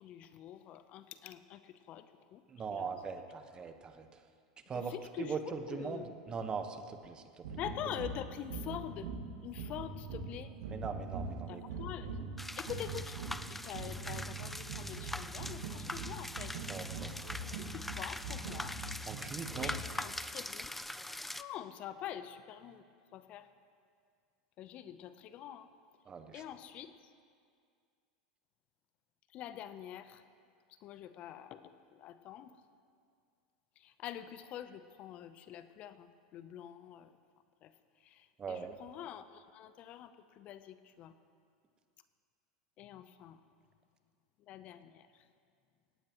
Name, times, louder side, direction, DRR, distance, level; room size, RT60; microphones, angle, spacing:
voice 1, 0.0-2.4 2.7-3.2 4.7-6.1 7.6-9.1 9.4-10.5 11.5-12.2 12.6-13.2 13.5-16.5 17.2-18.7 19.5-20.7 21.4-22.9 23.1-23.5 24.6-25.7 26.3-27.1 29.3-30.2 30.7-32.6 33.8-37.2 37.6-41.2 42.8-43.4 44.4-45.3, left 11 dB, 45° left, 11 dB, 0.8 m, -46 dB
voice 2, 2.5-4.2 4.7-7.4 10.7-11.6 16.7-17.1 19.1-19.7 26.1-26.4 38.4-38.7, right 5 dB, 30° right, 7 dB, 1.3 m, -41 dB
sound 1, 7.4-20.1, right 3 dB, 75° right, 2.1 m, -43 dB
sound 2, 12.4-21.4, left 1 dB, 5° left, 0.5 m, -43 dB
18.0 x 18.0 x 3.1 m, 2.2 s
hypercardioid pair, 90°, 3 cm